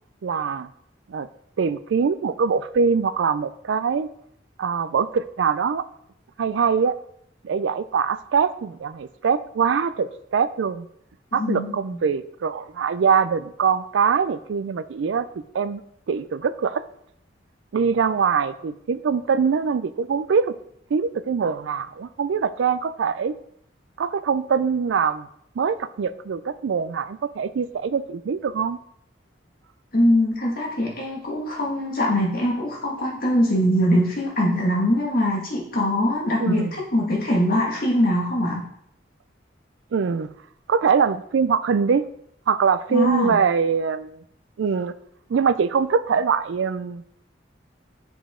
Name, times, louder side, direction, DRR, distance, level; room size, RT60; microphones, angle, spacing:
voice 1, 0.2-0.7 1.1-1.3 1.6-4.1 4.6-5.8 6.4-7.0 7.4-10.9 11.3-15.3 15.5-15.8 16.1-16.8 17.7-20.5 20.9-23.4 24.0-25.3 25.6-28.8 36.4-36.7 39.9-40.3 40.7-42.0 42.5-44.2 44.6-44.9 45.3-47.0, right 6 dB, 80° right, 15 dB, 0.4 m, -23 dB
voice 2, 11.4-11.7 29.9-38.6 42.9-43.4, equal, 50° left, -2 dB, 1.8 m, -22 dB
6.8 x 5.3 x 3.7 m, 0.70 s
head